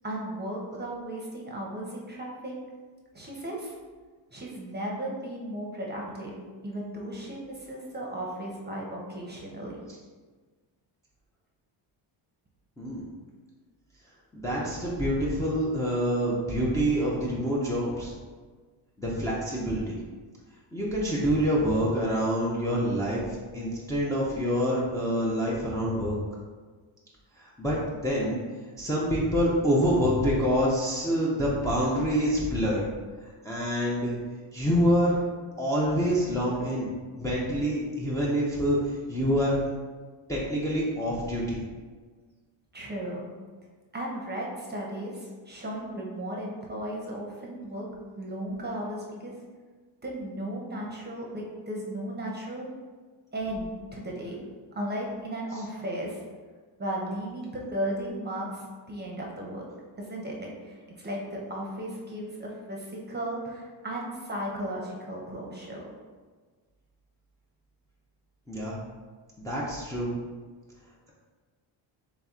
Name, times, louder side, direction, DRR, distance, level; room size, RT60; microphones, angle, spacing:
voice 1, 0.0-2.6 3.1-3.7 4.3-9.9 42.7-43.3 43.9-47.9 48.2-49.4 50.0-52.7 53.3-54.4 54.7-56.2 56.8-59.6 60.0-65.9, right 1 dB, 20° right, -2 dB, 0.9 m, -35 dB
voice 2, 14.3-18.1 19.0-20.0 20.7-26.2 27.4-28.4 28.8-32.8 33.2-34.2 34.5-35.2 35.6-39.6 40.3-41.6 68.5-68.8 69.4-70.1, equal, 5° left, -7 dB, 0.7 m, -26 dB
3.3 x 2.9 x 3.7 m, 1.4 s
cardioid pair, 80°, 49 cm